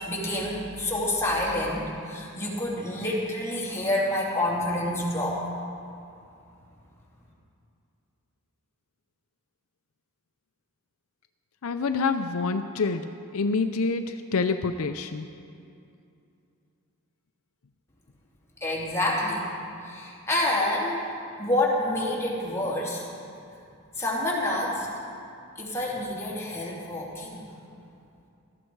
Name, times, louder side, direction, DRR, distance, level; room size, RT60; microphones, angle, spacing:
voice 1, 0.0-5.4 18.6-19.4 19.8-21.0 21.4-23.0 24.0-24.9 25.6-27.4, left 1 dB, 10° left, -4 dB, 2.7 m, -28 dB
voice 2, 11.6-15.3, left 4 dB, 70° left, 8 dB, 0.5 m, -27 dB
17.5 x 13.5 x 4.7 m, 2.6 s
head